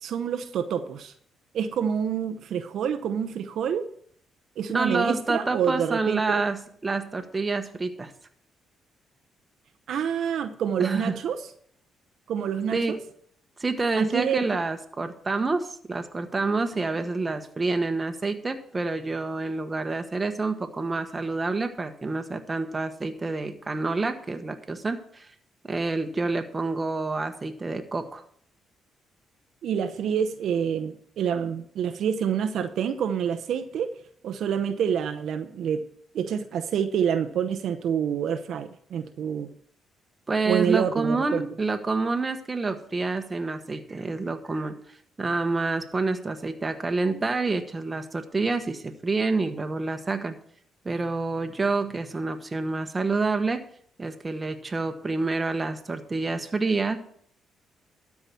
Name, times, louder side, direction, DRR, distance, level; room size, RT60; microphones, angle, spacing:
voice 1, 0.0-1.1 1.5-3.8 4.6-6.4 9.9-11.4 12.3-13.0 14.0-14.4 29.6-33.9 34.2-35.8 36.1-39.5 40.5-41.5, right 8 dB, 70° right, 7 dB, 0.7 m, -27 dB
voice 2, 4.7-8.1 10.8-11.2 12.7-12.9 13.6-25.3 25.6-28.2 40.3-44.7 45.2-50.3 50.8-53.6 54.0-57.0, right 3 dB, 25° right, 7 dB, 1.2 m, -28 dB
12.5 x 4.8 x 6.9 m, 0.62 s
cardioid pair, 90°, 0 cm